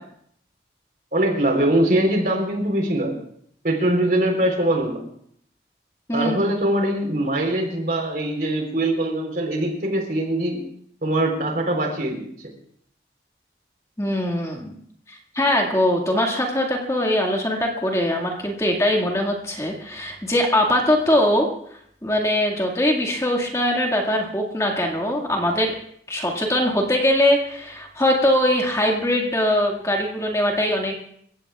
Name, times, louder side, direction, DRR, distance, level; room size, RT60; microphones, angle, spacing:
voice 1, 1.1-3.2 3.6-5.0 6.1-10.6 11.0-12.3, right 1 dB, 55° right, 2 dB, 3.9 m, -22 dB
voice 2, 6.1-6.5 14.0-14.8 15.1-21.5 22.0-25.7 26.1-30.9, left 1 dB, 15° left, 0 dB, 2.0 m, -21 dB
28.5 x 15.5 x 2.4 m, 0.67 s
head